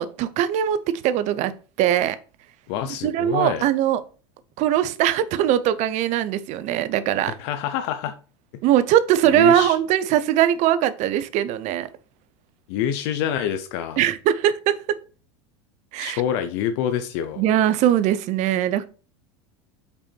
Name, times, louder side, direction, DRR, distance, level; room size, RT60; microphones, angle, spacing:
voice 1, 0.0-1.5 1.8-2.2 3.0-4.0 4.6-7.3 8.6-11.9 14.0-15.0 15.9-16.2 17.4-18.9, right 11 dB, 50° right, 14 dB, 0.7 m, -21 dB
voice 2, 2.7-3.6 7.2-8.1 9.2-9.8 12.7-14.0 16.0-17.4, left 9 dB, 65° left, 9 dB, 0.7 m, -26 dB
5.4 x 4.3 x 4.5 m, 0.37 s
hypercardioid pair, 105°, 15 cm